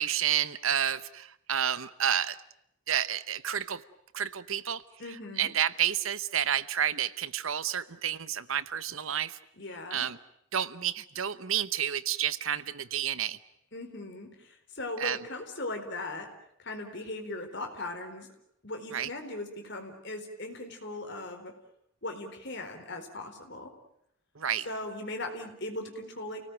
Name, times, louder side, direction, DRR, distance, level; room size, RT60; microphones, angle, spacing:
voice 1, 0.0-2.4 2.9-3.8 4.1-4.8 5.1-9.4 9.9-10.2 10.5-13.4 15.0-15.2 18.9-19.1 24.4-24.7, right 9 dB, 70° right, 16 dB, 0.9 m, -30 dB
voice 2, 5.0-5.5 9.6-10.1 13.7-16.3 16.6-18.3 18.6-21.5 22.0-23.7 24.7-26.4, left 2 dB, 55° left, 5 dB, 4.2 m, -39 dB
29.0 x 18.5 x 9.2 m, 0.76 s
head